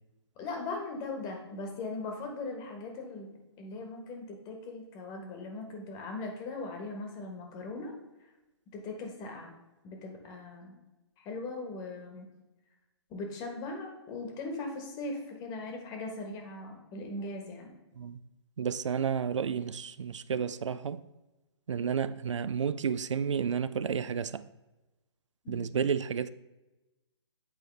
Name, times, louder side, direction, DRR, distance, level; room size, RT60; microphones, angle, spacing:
voice 1, 0.4-7.9 8.7-9.5 9.8-10.7 11.2-12.3 13.1-17.7 25.4-25.7, left 3 dB, 25° left, 1.3 m, -39 dB
voice 2, 18.6-21.0 21.7-24.4 25.5-26.3, right 7 dB, 85° right, 0.4 m, -31 dB
8.6 x 4.7 x 3.3 m
hypercardioid pair, 140°, 15 cm